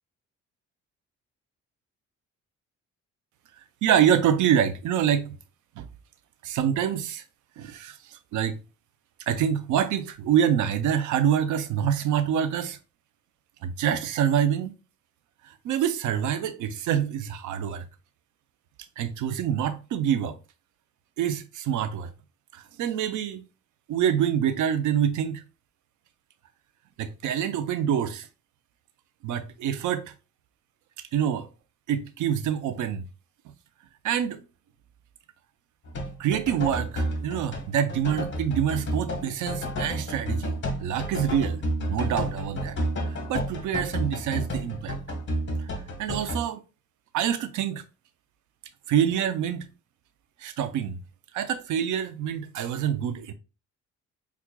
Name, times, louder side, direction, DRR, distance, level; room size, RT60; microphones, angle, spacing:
voice 1, 3.8-5.3 5.8-5.9 6.4-7.2 7.6-8.6 9.3-12.8 13.6-14.7 15.4-17.9 19.0-20.4 21.2-22.1 22.5-23.4 23.9-25.4 27.0-28.3 29.2-30.1 31.1-31.5 31.9-33.1 34.0-34.4 36.2-41.6 41.9-42.8 43.0-45.0 45.6-45.7 46.0-46.6 47.1-47.8 48.9-49.7 50.4-51.0 51.3-53.3, right 9 dB, 80° right, 0.6 m, -26 dB
sound 1, 35.8-46.4, equal, 40° left, 1.2 m, -31 dB
5.9 x 2.4 x 2.2 m
cardioid pair, 90°, 30 cm